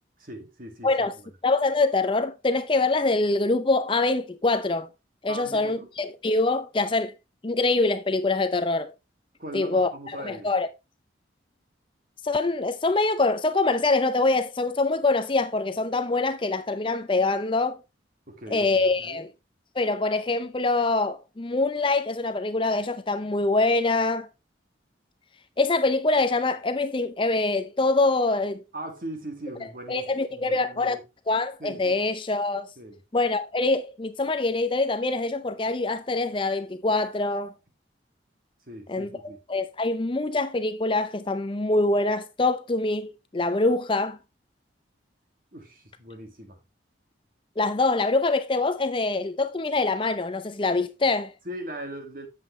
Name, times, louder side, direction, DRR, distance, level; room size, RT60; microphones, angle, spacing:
voice 1, 0.2-1.1 5.3-5.9 9.4-10.5 18.3-19.2 28.7-31.0 31.6-32.0 32.8-33.0 38.7-39.4 45.5-46.6 51.4-52.3, right 1 dB, 50° right, 2.1 m, -39 dB
voice 2, 0.8-1.1 1.4-4.9 5.2-7.1 7.4-8.9 9.5-10.7 12.2-17.8 18.5-19.3 19.8-24.3 25.6-28.6 29.9-31.0 31.3-32.7 33.1-37.5 38.9-44.2 47.6-51.3, left 3 dB, 25° left, 0.5 m, -24 dB
8.4 x 7.3 x 3.1 m
head